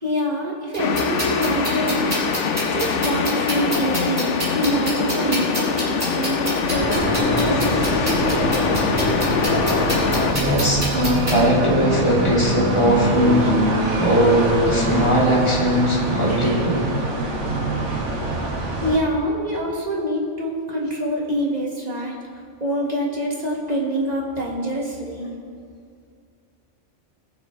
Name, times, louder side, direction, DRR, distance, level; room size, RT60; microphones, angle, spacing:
voice 1, 0.0-2.0 2.6-7.7 18.8-25.3, equal, 35° right, -3 dB, 1.8 m, -26 dB
sound 1, 0.7-11.3, equal, 15° right, 3.3 m, -29 dB
sound 2, 0.8-10.3, left 5 dB, 75° left, 1.0 m, -23 dB
sound 3, 6.7-19.0, right 2 dB, 70° right, 1.7 m, -24 dB
voice 2, 10.3-13.5 14.0-16.9, equal, 25° left, -7 dB, 2.7 m, -19 dB
20.5 x 7.0 x 3.2 m, 2.3 s
omnidirectional pair, 1.3 m